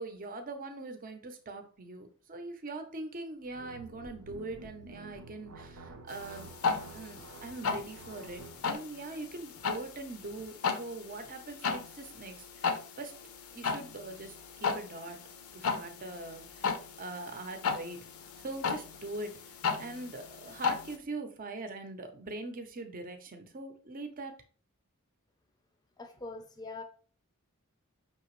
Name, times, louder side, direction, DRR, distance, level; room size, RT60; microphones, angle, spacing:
voice 1, 0.0-6.5 6.9-13.1 13.5-15.2 15.5-18.0 18.4-19.4 19.8-24.4, right 2 dB, 40° right, 0.7 m, -42 dB
sound 1, 3.4-8.7, right 2 dB, 80° right, 0.7 m, -49 dB
sound 2, 6.1-21.0, left 5 dB, 70° left, 0.6 m, -36 dB
voice 2, 26.0-26.8, left 3 dB, 20° left, 0.6 m, -43 dB
5.9 x 2.9 x 3.1 m
head